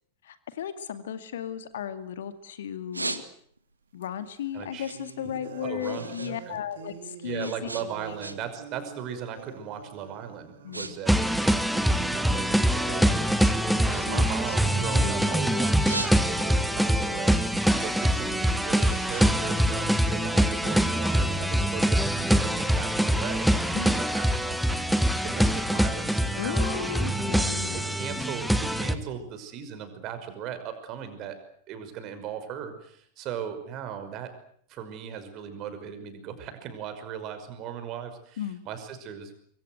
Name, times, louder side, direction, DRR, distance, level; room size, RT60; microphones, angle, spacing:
voice 1, 0.2-3.2 3.9-7.7 10.6-11.0 13.9-14.3 14.7-15.4 23.7-23.9 26.4-28.3 38.4-38.6, left 9 dB, 60° left, 11 dB, 2.2 m, -35 dB
sound 1, 1.2-2.3 2.7-3.7 4.1-6.4 6.6-8.7 9.0-9.3 9.9-10.1 10.4-10.9 11.2-12.4 12.9-15.2 15.6-16.6 17.1-20.2, right 2 dB, 85° right, 2.0 m, -39 dB
sound 2, 4.0-4.1 4.9-10.9 11.2-11.4 11.7-22.9, right 8 dB, 60° right, 2.8 m, -46 dB
voice 2, 4.5-4.9 5.2-5.3 5.6-6.6 7.2-27.4 27.7-31.4 31.7-34.3 34.7-39.3, right 8 dB, 35° right, 8 dB, 5.7 m, -38 dB
sound 3, 11.1-28.9, equal, ahead, 1.8 m, -24 dB
25.0 x 23.5 x 8.0 m, 0.63 s
figure-of-eight pair, 90°, 0 cm